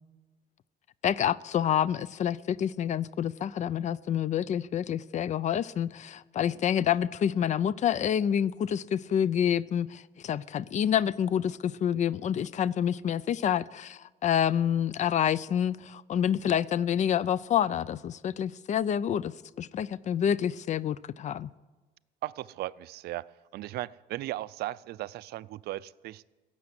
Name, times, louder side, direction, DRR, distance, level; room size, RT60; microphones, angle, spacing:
voice 1, 1.0-21.5, left 9 dB, 45° left, 0.5 m, -28 dB
voice 2, 22.2-23.3 23.5-26.2, right 16 dB, 70° right, 0.4 m, -37 dB
16.5 x 7.5 x 9.8 m
cardioid pair, 110°, 17 cm